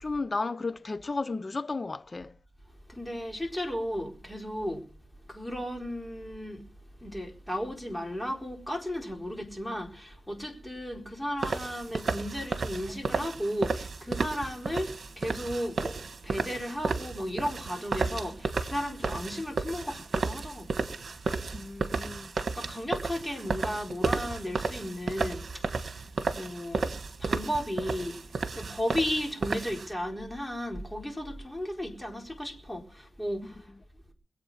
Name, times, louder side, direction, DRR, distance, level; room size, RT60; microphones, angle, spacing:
voice 1, 0.0-2.3 21.5-22.3, left 3 dB, 45° left, 0.7 m, -33 dB
voice 2, 2.9-4.9 5.2-6.7 7.0-20.9 22.5-26.1 26.3-28.2 28.5-33.7, equal, 10° left, 4.3 m, -35 dB
sound 1, 11.4-29.9, right 4 dB, 70° right, 1.5 m, -33 dB
22.5 x 8.3 x 5.7 m
cardioid pair, 50°, 0 cm